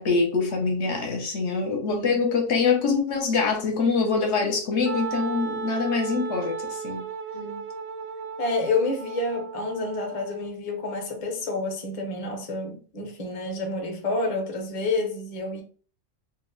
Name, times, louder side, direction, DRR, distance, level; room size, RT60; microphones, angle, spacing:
voice 1, 0.0-7.0, left 4 dB, 65° left, 0.9 m, -24 dB
voice 2, 1.9-2.2 7.3-7.6 8.4-15.6, left 3 dB, 40° left, 0.6 m, -29 dB
Wind instrument woodwind instrument, 4.9-10.5, right 6 dB, 65° right, 0.7 m, -35 dB
2.6 x 2.0 x 3.7 m
omnidirectional pair, 1.4 m